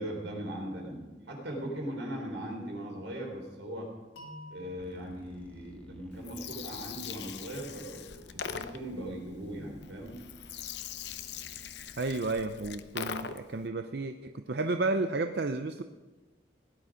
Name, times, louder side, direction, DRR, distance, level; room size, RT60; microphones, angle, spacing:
voice 1, 0.0-3.9 4.5-10.2, right 1 dB, 85° right, 0 dB, 4.2 m, -39 dB
sound 1, 4.2-7.1, left 1 dB, 85° left, 3.1 m, -52 dB
sound 2, 4.8-12.8, left 1 dB, 10° left, 1.1 m, -56 dB
Gurgling, 6.1-13.6, left 7 dB, 65° left, 0.7 m, -42 dB
voice 2, 12.0-15.8, right 3 dB, 60° right, 7 dB, 0.6 m, -32 dB
17.0 x 11.0 x 5.0 m, 1.2 s
head